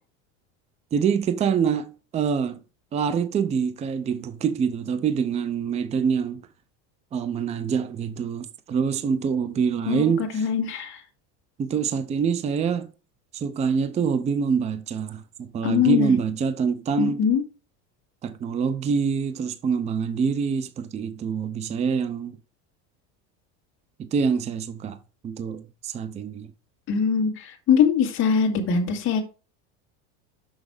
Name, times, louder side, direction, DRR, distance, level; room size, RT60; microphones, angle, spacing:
voice 1, 0.9-2.6 2.9-6.4 7.1-10.5 11.6-12.9 13.3-17.2 18.2-22.4 24.0-25.0 25.2-26.5, right 6 dB, 20° right, 0.5 m, -25 dB
voice 2, 9.9-11.0 15.6-16.2 17.0-17.4 26.9-29.2, left 7 dB, 35° left, 1.9 m, -22 dB
6.4 x 6.0 x 4.9 m
cardioid pair, 150°, 34 cm